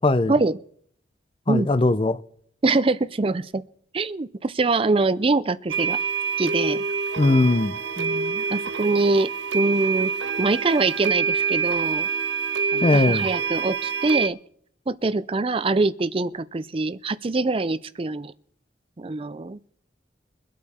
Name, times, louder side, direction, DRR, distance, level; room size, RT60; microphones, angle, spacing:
voice 1, 0.0-0.3 1.5-2.2 7.2-7.8 12.8-13.3, left 2 dB, 30° left, 0.5 m, -19 dB
voice 2, 2.6-3.6 3.9-6.0 6.4-6.8 8.0-10.1 10.4-12.1 12.7-14.4 14.9-18.3 19.0-19.7, right 3 dB, 30° right, 0.5 m, -24 dB
sound 1, 5.7-14.3, right 5 dB, 85° right, 0.7 m, -26 dB
sound 2, 7.1-11.0, right 1 dB, 70° left, 4.9 m, -45 dB
23.5 x 8.4 x 4.3 m
head